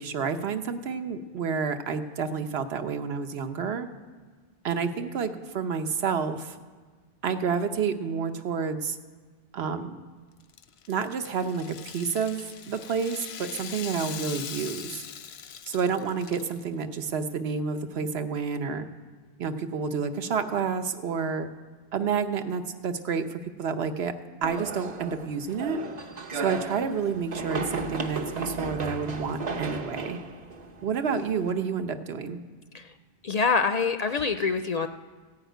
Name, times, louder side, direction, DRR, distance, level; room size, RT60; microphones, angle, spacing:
voice 1, 0.0-3.9 4.6-6.6 7.2-9.0 9.5-10.0 10.9-15.0 15.7-18.9 19.4-21.5 21.9-24.1 24.4-25.8 26.3-30.2 30.8-32.4, right 6 dB, 85° right, 8 dB, 1.1 m, -29 dB
Rattle (instrument), 10.4-16.6, left 8 dB, 85° left, 0.9 m, -41 dB
sound 1, 24.4-31.5, right 3 dB, 45° right, 0.9 m, -35 dB
voice 2, 33.2-34.9, left 5 dB, 55° left, 9 dB, 0.5 m, -25 dB
15.0 x 5.8 x 9.1 m, 1.5 s
omnidirectional pair, 1.0 m